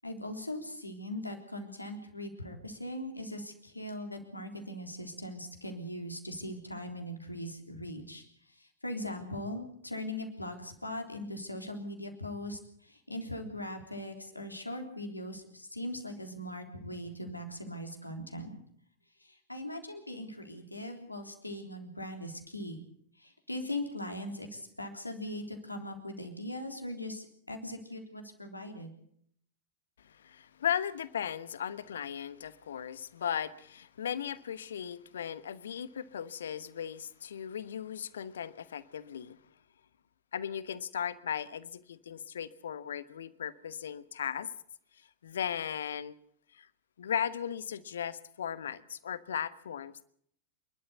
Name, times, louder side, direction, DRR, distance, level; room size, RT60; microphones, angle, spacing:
voice 1, 0.0-8.2 8.5-18.5 19.2-22.8 23.2-28.9, left 1 dB, 85° left, 4 dB, 3.7 m, -40 dB
voice 2, 30.0-39.4 40.3-44.5 45.2-46.1 46.5-46.7 47.0-50.0, left 8 dB, 65° left, 16 dB, 1.1 m, -37 dB
28.0 x 12.5 x 8.2 m, 0.66 s
figure-of-eight pair, 90°, 0 cm